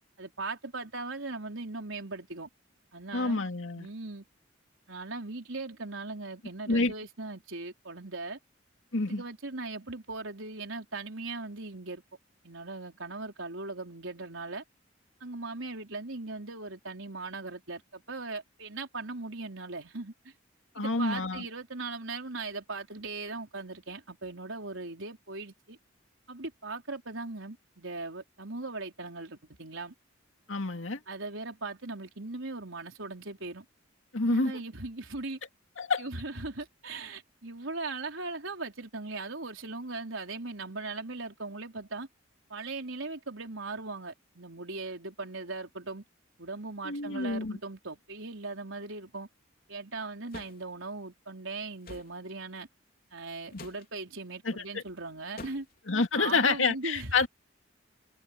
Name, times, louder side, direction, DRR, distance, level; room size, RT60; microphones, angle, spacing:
voice 1, 0.2-2.5 2.9-3.4 3.8-4.2 4.9-8.4 9.1-12.0 12.4-14.6 15.2-20.3 20.8-25.8 26.3-29.9 31.1-33.6 34.2-35.4 36.0-42.1 42.5-46.0 46.4-49.3 49.7-52.7 53.1-55.7 56.1-57.1, right 3 dB, 75° right, 4.1 m, -39 dB
voice 2, 3.1-3.9 6.7-6.9 8.9-9.2 20.7-21.4 30.5-31.0 34.1-34.6 35.8-36.0 46.8-47.6 53.5-53.6 54.4-54.8 55.9-57.3, left 3 dB, 70° left, 2.5 m, -28 dB
sound 1, 50.3-50.6 51.8-52.1 53.5-53.9 55.4-55.8, left 2 dB, 50° left, 3.3 m, -46 dB
head